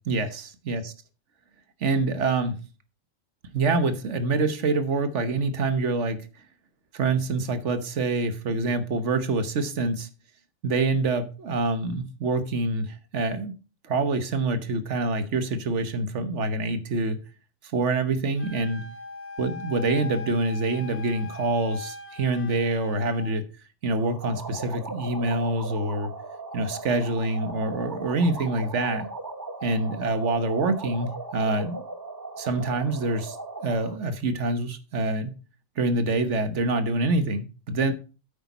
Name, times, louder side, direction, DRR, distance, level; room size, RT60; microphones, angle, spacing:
voice 1, 0.1-0.9 1.8-2.6 3.5-6.2 6.9-10.1 10.6-13.5 13.8-17.2 17.7-18.8 19.4-23.4 23.8-26.1 26.5-29.1 29.6-31.8 32.4-33.4 33.6-35.4 35.8-37.9, right 3 dB, 65° right, 1.4 m, -26 dB
Wind instrument woodwind instrument, 18.4-23.4, left 4 dB, 60° left, 1.2 m, -40 dB
sound 1, 24.0-34.0, right 2 dB, 20° right, 0.9 m, -38 dB
8.8 x 8.3 x 4.1 m
omnidirectional pair, 1.3 m